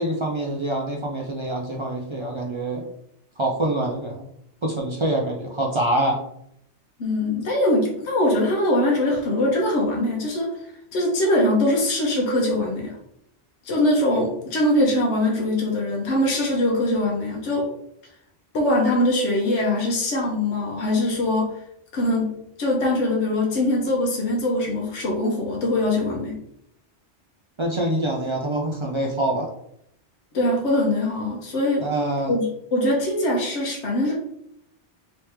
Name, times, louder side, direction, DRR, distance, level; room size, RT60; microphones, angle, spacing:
voice 1, 0.0-2.8 3.4-4.3 4.6-6.2 27.6-29.5 31.8-32.3, right 1 dB, 55° right, -1 dB, 0.3 m, -25 dB
voice 2, 7.0-10.5 10.9-13.0 13.6-17.7 18.5-21.5 21.9-26.4 30.3-31.9 32.3-34.1, left 1 dB, 80° left, -2 dB, 1.1 m, -22 dB
3.2 x 3.1 x 3.2 m, 0.75 s
omnidirectional pair, 1.2 m